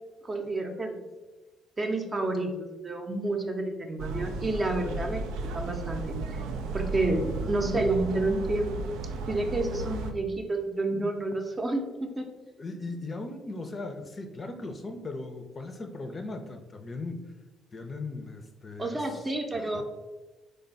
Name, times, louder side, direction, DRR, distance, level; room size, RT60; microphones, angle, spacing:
voice 1, 0.2-1.0 1.8-5.2 5.5-6.4 6.7-8.8 9.3-12.3 18.8-19.8, right 2 dB, 30° right, 3 dB, 0.6 m, -30 dB
sound 1, 4.0-10.1, right 3 dB, 75° right, 0.3 m, -34 dB
voice 2, 12.6-17.2 17.7-19.8, left 3 dB, 40° left, 5 dB, 0.5 m, -38 dB
3.3 x 2.2 x 3.9 m, 1.1 s
hypercardioid pair, 50°, 0 cm